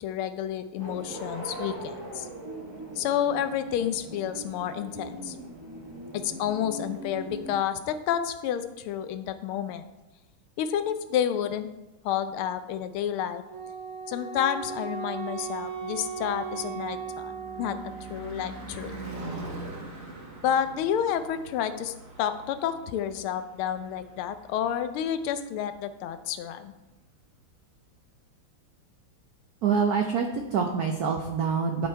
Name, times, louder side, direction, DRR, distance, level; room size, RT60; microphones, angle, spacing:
voice 1, 0.0-2.3 3.0-5.4 6.1-9.8 10.6-11.7 12.0-13.4 14.1-17.3 17.6-17.8 18.1-18.9 20.4-26.7, left 9 dB, 80° left, 10 dB, 1.4 m, -30 dB
sound 1, 0.8-7.5, right 1 dB, 35° right, 0.4 m, -40 dB
Wind instrument woodwind instrument, 13.4-18.3, right 6 dB, 55° left, 2.2 m, -37 dB
Car passing by / Truck / Engine, 15.2-25.3, right 2 dB, 50° right, 1.7 m, -43 dB
voice 2, 29.6-31.9, right 6 dB, 75° right, 3 dB, 0.8 m, -26 dB
10.5 x 4.2 x 4.5 m, 1.0 s
omnidirectional pair, 2.4 m